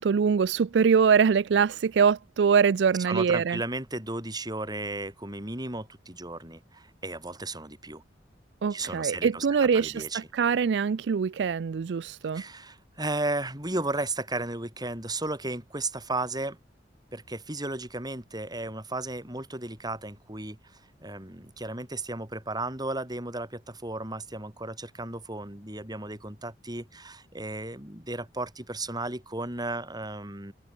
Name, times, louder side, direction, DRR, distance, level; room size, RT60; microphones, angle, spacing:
voice 1, 0.0-3.6 8.6-12.4, right 6 dB, 70° right, 0.4 m, -23 dB
voice 2, 3.1-8.0 8.7-9.5 9.7-10.3 12.3-16.6 17.1-30.5, right 2 dB, 25° right, 7.2 m, -34 dB
head